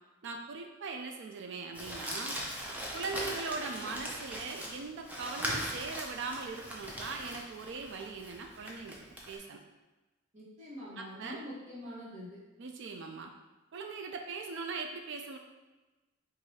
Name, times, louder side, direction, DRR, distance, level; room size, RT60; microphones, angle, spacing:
voice 1, 0.2-2.4 2.9-9.6 11.0-11.4 12.6-13.3 13.7-15.4, right 4 dB, 55° right, 4 dB, 0.4 m, -40 dB
Crumpling crinkling, 1.7-9.3, equal, 5° right, 0.5 m, -40 dB
voice 2, 10.3-12.4, equal, 35° right, -6 dB, 1.3 m, -45 dB
4.7 x 2.6 x 4.1 m, 1.2 s
head